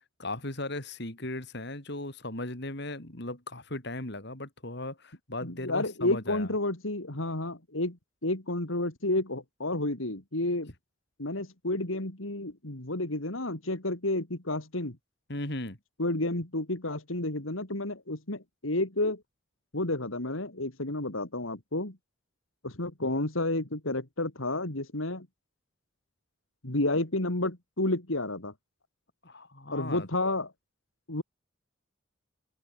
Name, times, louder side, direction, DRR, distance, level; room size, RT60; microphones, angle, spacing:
voice 1, 0.2-6.5 15.3-15.8 29.2-30.1, left 2 dB, 55° left, 4.1 m, -37 dB
voice 2, 5.4-8.0 8.2-10.7 11.2-15.0 16.0-19.2 19.7-22.0 22.6-25.3 26.6-28.5 29.7-30.5 31.1-31.2, left 2 dB, 80° left, 3.3 m, -31 dB
head